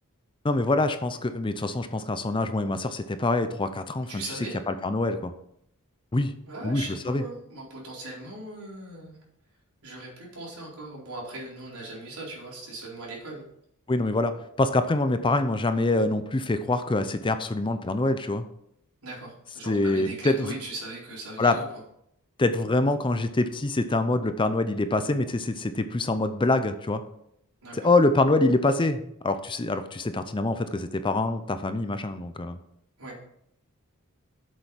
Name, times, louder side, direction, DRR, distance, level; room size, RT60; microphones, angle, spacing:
voice 1, 0.4-4.2 4.7-5.3 6.1-6.3 6.6-7.2 13.9-18.4 19.7-20.5 21.4-21.6 22.4-27.0 27.7-32.6, left 2 dB, 20° left, 10 dB, 0.5 m, -25 dB
voice 2, 4.1-4.6 6.5-9.2 9.8-13.4 19.0-21.6 27.6-27.9 33.0-33.2, right 2 dB, 80° right, -4 dB, 4.3 m, -39 dB
7.9 x 6.7 x 5.7 m, 0.74 s
head